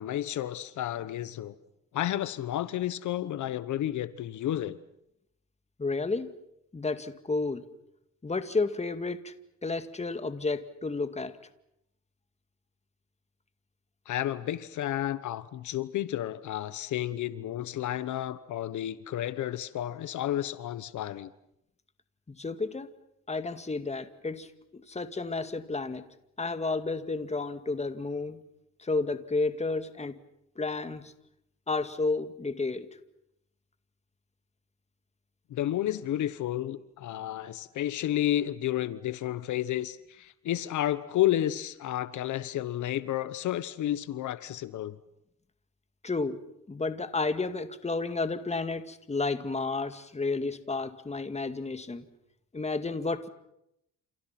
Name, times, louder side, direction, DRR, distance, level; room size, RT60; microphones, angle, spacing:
voice 1, 0.0-1.5 1.9-4.8 14.1-21.3 35.5-45.0, left 12 dB, 75° left, 14 dB, 1.2 m, -31 dB
voice 2, 5.8-6.3 6.7-7.6 8.2-9.3 9.6-11.3 22.4-22.9 23.3-26.1 26.4-28.4 28.8-30.1 30.6-31.1 31.7-32.9 46.0-46.4 46.7-52.0 52.5-53.3, left 3 dB, 20° left, 10 dB, 2.1 m, -31 dB
30.0 x 28.5 x 6.0 m, 0.81 s
cardioid pair, 90°, 30 cm